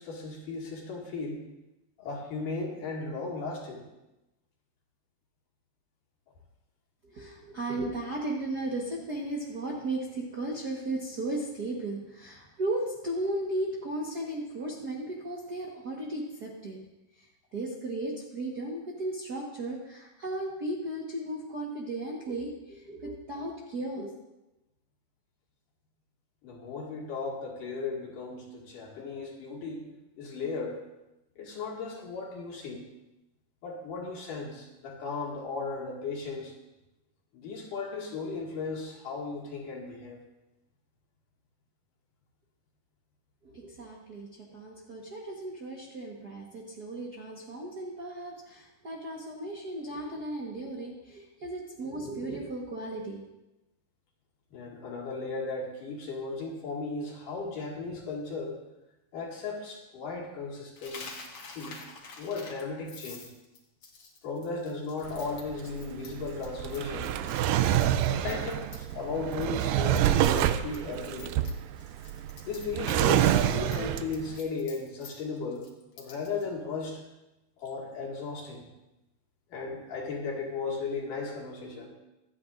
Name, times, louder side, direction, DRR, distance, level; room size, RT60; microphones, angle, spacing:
voice 1, 0.0-1.4 2.0-3.9 26.4-29.9 30.2-30.8 31.4-32.8 33.6-36.5 37.3-40.2 54.5-58.6 59.1-61.1 61.5-61.8 62.2-63.2 64.2-67.2 68.1-71.4 72.4-75.7 76.0-77.0 77.6-78.7 79.5-81.9, left 4 dB, 75° left, -2 dB, 3.7 m, -36 dB
voice 2, 7.0-16.8 17.2-17.3 17.5-24.1 43.4-53.2, right 1 dB, 50° right, -4 dB, 1.2 m, -35 dB
Coin (dropping), 60.8-69.0 69.3-69.6 69.9-73.1 73.3-76.5, left 4 dB, 45° left, 2.0 m, -47 dB
Drawer open or close, 65.0-74.3, right 11 dB, 85° right, 2.2 m, -27 dB
24.5 x 9.3 x 2.6 m, 0.97 s
omnidirectional pair, 3.8 m